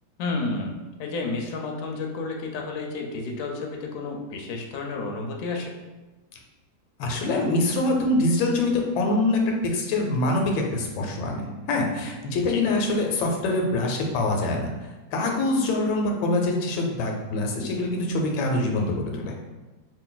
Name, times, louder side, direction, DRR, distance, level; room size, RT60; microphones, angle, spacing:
voice 1, 0.2-5.7 12.5-12.7, left 3 dB, 70° left, 1 dB, 0.9 m, -31 dB
voice 2, 7.0-11.4 11.7-14.7 15.1-19.3, left 2 dB, 85° left, 1 dB, 1.4 m, -24 dB
3.2 x 2.6 x 3.8 m, 1.1 s
omnidirectional pair, 2.1 m